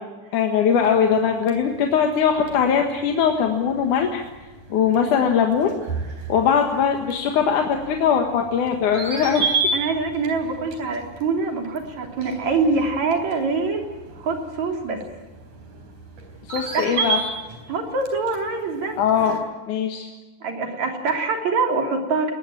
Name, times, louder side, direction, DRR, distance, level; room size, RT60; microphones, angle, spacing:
voice 1, 0.3-4.2 4.7-5.8 6.3-9.5 16.5-17.2 19.0-19.4 19.7-20.1, left 7 dB, 85° left, 3 dB, 3.1 m, -20 dB
sound 1, 0.7-19.4, right 4 dB, 85° right, 5.4 m, -33 dB
voice 2, 9.7-13.8 14.2-15.0 16.6-17.1 17.7-19.0 19.3-19.4 20.4-22.3, right 4 dB, 65° right, 3 dB, 4.6 m, -24 dB
20.5 x 20.0 x 9.0 m, 1.2 s
omnidirectional pair, 3.4 m